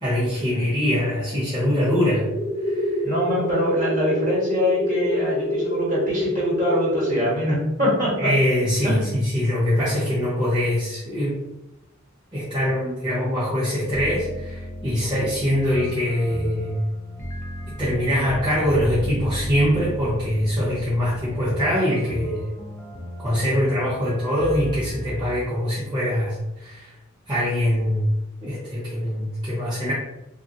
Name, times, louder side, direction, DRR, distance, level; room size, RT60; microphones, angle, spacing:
voice 1, 0.0-2.3 2.7-3.0 8.2-11.4 12.3-16.8 17.8-22.4 23.2-26.9 27.3-28.1 28.4-29.9, equal, 20° right, -10 dB, 0.8 m, -23 dB
sound 1, 2.2-7.2, left 1 dB, 90° right, 1.2 m, -26 dB
voice 2, 3.0-8.3 8.8-9.2, equal, 40° right, -6 dB, 1.3 m, -24 dB
sound 2, 13.9-25.5, equal, 10° left, 0.5 m, -34 dB
2.8 x 2.5 x 2.7 m, 0.92 s
head